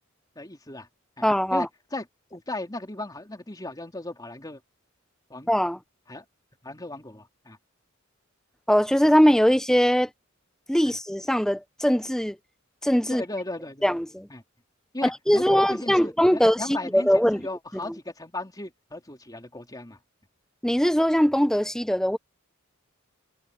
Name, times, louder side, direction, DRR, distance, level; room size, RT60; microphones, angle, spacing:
voice 1, 0.3-0.9 1.2-1.3 1.5-4.6 5.3-5.5 6.1-6.2 6.6-7.6 10.8-10.9 13.1-13.9 14.3-14.4 14.9-20.0, left 2 dB, 20° left, 3.4 m, -36 dB
voice 2, 1.2-1.7 5.5-5.8 8.7-10.1 10.7-12.4 12.8-13.2 13.8-14.3 15.0-16.6 16.9-17.4 20.6-22.2, equal, 5° left, 1.0 m, -21 dB
head